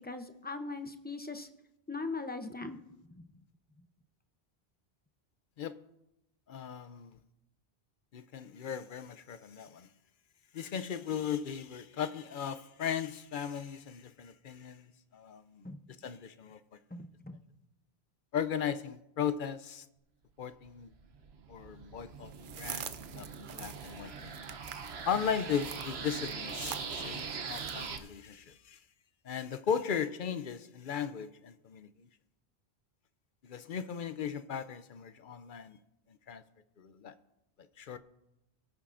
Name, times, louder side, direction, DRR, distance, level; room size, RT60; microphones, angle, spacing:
voice 1, 0.0-1.5 1.9-2.8 3.1-3.3 15.6-15.8 16.9-17.4, left 3 dB, 10° left, 0.5 m, -40 dB
voice 2, 6.5-7.2 8.1-9.9 10.5-15.7 16.0-16.6 16.9-17.0 18.3-19.9 20.4-20.9 21.5-24.6 25.1-28.8 29.2-31.9 33.5-35.8 36.3-36.4 36.8-37.1 37.8-38.0, left 7 dB, 60° left, 0.7 m, -37 dB
sound 1, 20.7-28.0, right 5 dB, 80° right, 1.1 m, -42 dB
sound 2, 22.2-28.1, right 9 dB, 60° right, 0.7 m, -47 dB
22.5 x 8.8 x 2.5 m
omnidirectional pair, 1.1 m